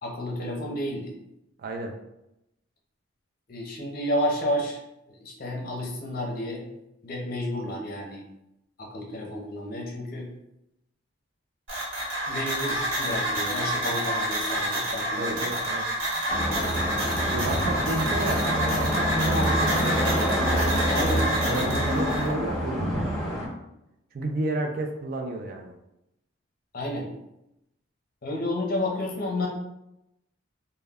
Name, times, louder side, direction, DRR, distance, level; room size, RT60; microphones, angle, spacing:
voice 1, 0.0-1.1 3.5-4.8 5.2-6.6 7.0-8.2 8.8-10.3 12.3-15.6 19.3-19.5 20.9-21.7 26.7-27.1 28.2-29.5, left 1 dB, 45° left, -1 dB, 0.6 m, -31 dB
voice 2, 1.6-2.0 15.2-15.9 17.3-20.3 21.5-23.4 24.1-25.7, right 2 dB, 45° right, 4 dB, 0.3 m, -32 dB
sound 1, 11.7-22.3, right 1 dB, 75° right, 1.1 m, -28 dB
sound 2, 16.3-23.5, equal, ahead, 0.6 m, -26 dB
2.2 x 2.1 x 3.4 m, 0.86 s
head